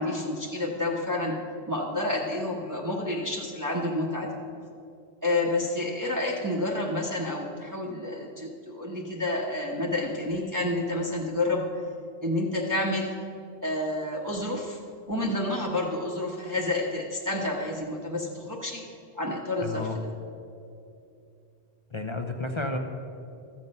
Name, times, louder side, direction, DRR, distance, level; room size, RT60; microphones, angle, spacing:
voice 1, 0.0-1.3 1.7-4.3 5.2-11.6 12.2-13.1 13.6-14.8 15.1-18.8 19.1-19.9, left 2 dB, 20° right, -3 dB, 1.0 m, -29 dB
voice 2, 19.6-20.0 21.9-22.8, left 2 dB, 35° left, 4 dB, 0.6 m, -31 dB
13.5 x 7.4 x 5.4 m, 2.6 s
omnidirectional pair, 1.1 m